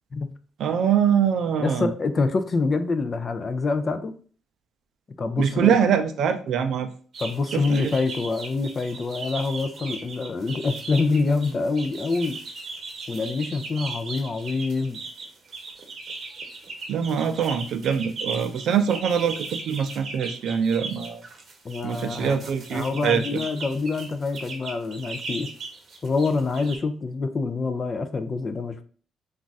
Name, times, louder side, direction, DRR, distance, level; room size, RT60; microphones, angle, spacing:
voice 1, 0.6-1.9 5.4-6.9 7.5-7.9 16.9-21.2 21.8-23.4, right 7 dB, 70° right, 0.4 m, -24 dB
voice 2, 1.6-4.1 5.2-5.8 7.2-12.4 13.1-15.0 21.6-22.4 22.7-25.5 26.0-28.8, left 3 dB, 40° left, 0.4 m, -26 dB
sound 1, 7.1-26.8, right 3 dB, 55° right, 0.8 m, -38 dB
2.4 x 2.4 x 3.9 m
cardioid pair, 90°, 0 cm